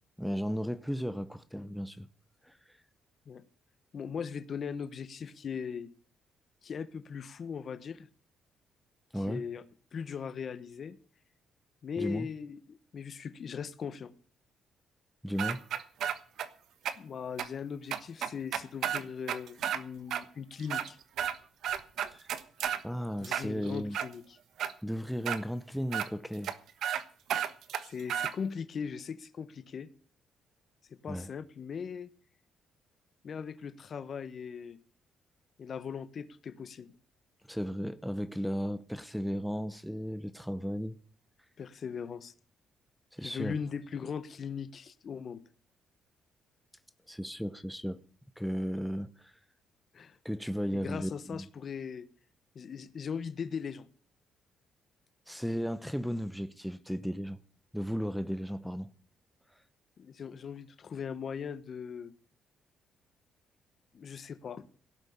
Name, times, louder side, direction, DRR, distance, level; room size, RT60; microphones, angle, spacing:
voice 1, 0.2-2.1 2.5-2.6 9.1-9.4 12.0-12.3 15.2-15.6 22.1-22.3 22.8-24.0 24.8-26.5 31.1-31.3 37.5-41.0 43.1-43.5 47.1-48.0 48.4-49.3 50.2-51.5 55.3-57.4 57.7-58.9, equal, ahead, 0.9 m, -35 dB
voice 2, 3.9-5.9 6.6-8.1 9.1-9.6 9.9-11.0 11.8-14.1 16.9-21.0 23.2-24.4 27.8-29.9 31.0-32.1 33.2-34.8 35.6-36.9 41.6-42.3 43.2-45.4 49.9-50.2 50.7-52.0 52.5-53.9 60.0-62.1 63.9-64.7, left 6 dB, 50° left, 1.2 m, -39 dB
sound 1, 15.4-16.5 16.9-17.0 17.4-17.5 17.9-19.8 20.1-20.2 20.6-21.4 21.6-22.8 23.2-24.1 24.6-24.7 25.3-25.4 25.9-26.1 26.4-26.5 26.8-27.0 27.3-28.3, right 9 dB, 75° right, 1.2 m, -32 dB
17.5 x 6.3 x 8.6 m
cardioid pair, 90°, 0 cm